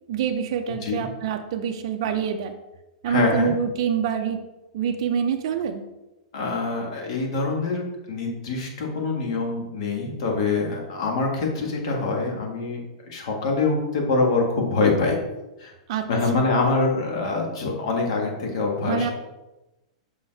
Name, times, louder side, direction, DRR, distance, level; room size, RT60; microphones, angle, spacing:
voice 1, 0.1-2.5 3.0-4.4 4.7-5.8 15.9-16.5 18.9-19.1, right 7 dB, 50° right, 4 dB, 0.4 m, -26 dB
voice 2, 0.7-1.1 3.1-3.5 6.3-12.8 13.1-15.2 15.6-15.7 16.1-19.1, left 3 dB, 55° left, 1 dB, 1.6 m, -25 dB
5.6 x 4.5 x 4.5 m, 1.0 s
supercardioid pair, 165°, 3 cm